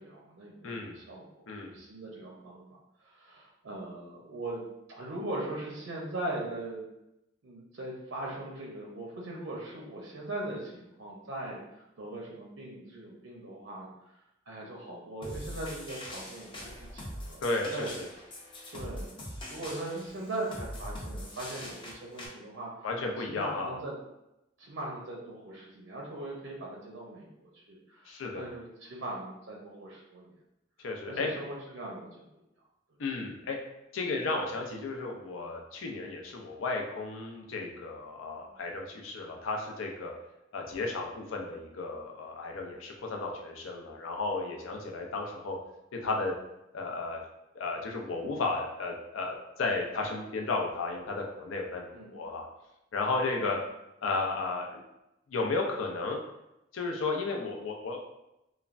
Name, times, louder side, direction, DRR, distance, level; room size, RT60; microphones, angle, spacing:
voice 1, 0.0-2.7 3.0-4.6 4.9-6.8 7.4-14.1 14.5-18.0 18.7-19.1 19.5-22.7 23.2-24.0 24.6-30.3 31.1-32.3 38.3-38.6 51.9-52.2 53.3-53.5, right 2 dB, 75° right, -3 dB, 0.5 m, -40 dB
voice 2, 0.6-1.0 1.5-1.7 17.4-18.1 22.8-23.8 28.1-28.5 30.8-31.3 33.0-33.6 33.9-40.1 40.5-45.6 46.0-46.3 46.7-47.2 47.5-52.4 52.9-53.6 54.0-54.8 55.3-56.2 56.7-58.1, left 3 dB, 90° left, 1 dB, 0.5 m, -33 dB
sound 1, 15.2-22.3, left 1 dB, 25° left, 0.5 m, -42 dB
3.1 x 2.1 x 2.5 m, 0.89 s
head